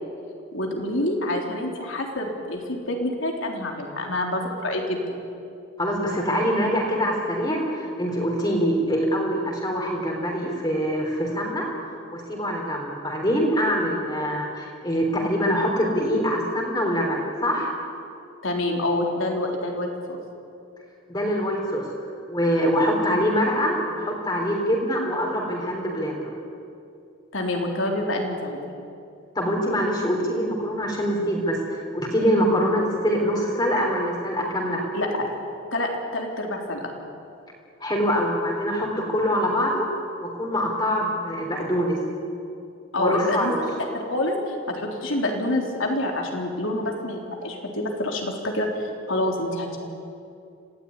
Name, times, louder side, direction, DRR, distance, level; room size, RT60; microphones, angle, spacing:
voice 1, 0.5-5.2 18.4-20.2 27.3-28.6 34.9-35.4 35.7-36.9 42.9-43.6 43.9-49.8, left 1 dB, 70° left, 1 dB, 3.9 m, -27 dB
voice 2, 5.8-11.7 12.1-17.7 21.1-21.9 22.3-26.3 29.4-34.8 37.8-39.9 40.2-42.0 43.0-43.6, equal, 20° left, -1 dB, 3.7 m, -24 dB
26.5 x 17.0 x 9.8 m, 2.6 s
head